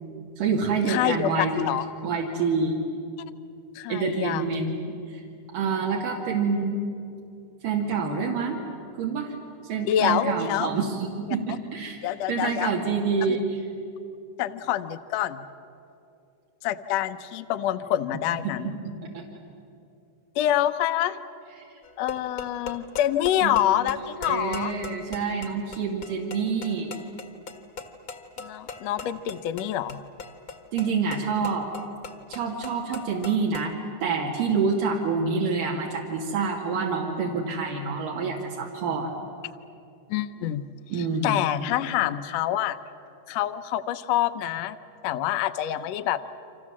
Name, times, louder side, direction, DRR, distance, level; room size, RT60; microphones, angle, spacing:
voice 1, 0.4-1.6 2.0-2.8 3.9-5.2 5.5-6.8 7.6-8.6 9.0-9.3 9.7-12.0 12.3-13.6 18.5-19.2 23.4-23.6 24.2-26.9 30.7-31.7 32.3-33.7 34.0-39.1 40.9-41.4, right 5 dB, 85° right, -2 dB, 3.7 m, -27 dB
voice 2, 0.9-1.8 3.7-4.5 9.9-10.7 12.0-12.7 14.4-15.4 16.6-18.7 20.3-21.2 22.0-24.7 28.4-30.0 40.1-40.6 41.2-42.8 43.3-44.8 45.0-46.2, left 12 dB, 70° left, 10 dB, 1.7 m, -26 dB
sound 1, 21.8-33.8, left 4 dB, 45° left, 1.2 m, -41 dB
29.5 x 25.5 x 7.4 m, 2.6 s
omnidirectional pair, 3.7 m